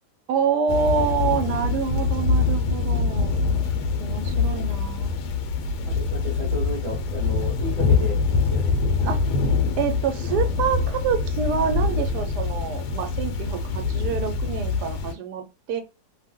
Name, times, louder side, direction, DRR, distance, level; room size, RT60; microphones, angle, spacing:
voice 1, 0.3-3.3 4.0-5.1 9.1-9.2 9.8-15.8, right 6 dB, 75° right, 1.1 m, -27 dB
Thunder / Rain, 0.7-15.1, left 4 dB, 80° left, 1.1 m, -24 dB
voice 2, 5.8-9.1, equal, 30° right, 0.8 m, -34 dB
2.8 x 2.0 x 3.5 m
omnidirectional pair, 1.8 m